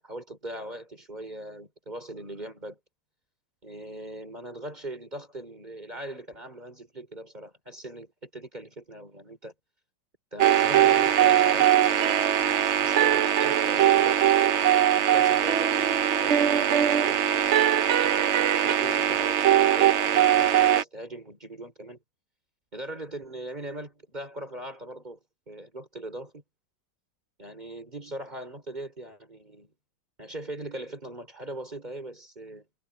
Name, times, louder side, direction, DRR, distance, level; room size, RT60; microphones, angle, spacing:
voice 1, 0.0-2.8 3.6-9.5 10.3-12.2 12.8-14.7 15.1-17.3 18.0-22.0 22.7-25.2 25.5-26.4 27.4-29.7 30.2-32.7, right 1 dB, 25° right, 4.6 m, -40 dB
sound 1, 10.4-20.8, right 10 dB, 60° right, 0.7 m, -21 dB
omnidirectional pair, 1.9 m